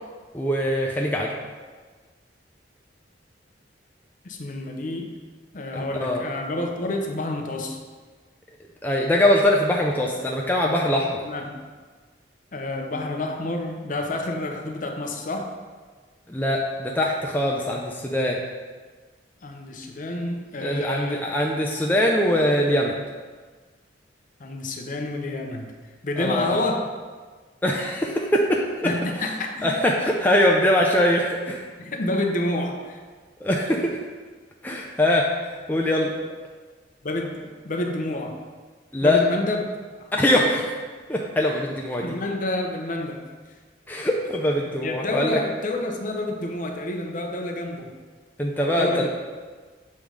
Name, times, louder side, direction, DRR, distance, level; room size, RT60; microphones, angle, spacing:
voice 1, 0.3-1.3 5.7-6.2 8.8-11.2 16.3-18.4 20.6-23.0 26.2-26.6 27.6-28.7 29.2-29.3 29.6-31.6 33.4-34.0 34.6-36.1 38.9-39.2 40.1-40.6 41.1-42.1 43.9-45.4 48.4-49.1, left 1 dB, 10° left, -1 dB, 0.4 m, -22 dB
voice 2, 4.2-5.1 5.5-7.8 11.2-11.6 12.5-15.5 19.4-21.3 24.4-25.7 26.0-26.9 28.8-29.7 31.8-33.0 37.0-38.4 39.0-40.1 40.4-40.6 42.0-43.2 44.8-47.9 48.6-49.1, left 1 dB, 45° left, 3 dB, 0.7 m, -29 dB
7.0 x 3.1 x 5.0 m, 1.4 s
head